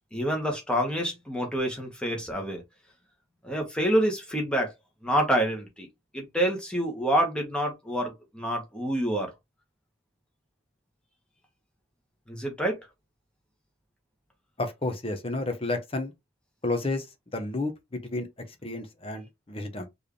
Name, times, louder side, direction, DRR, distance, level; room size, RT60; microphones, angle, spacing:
voice 1, 0.1-2.6 3.4-4.7 5.0-5.9 6.1-9.3 12.3-12.8, right 1 dB, 5° left, 1.4 m, -27 dB
voice 2, 14.6-16.1 16.6-17.1 17.3-18.3 18.6-19.9, left 2 dB, 30° left, 1.0 m, -31 dB
4.6 x 3.4 x 3.2 m
head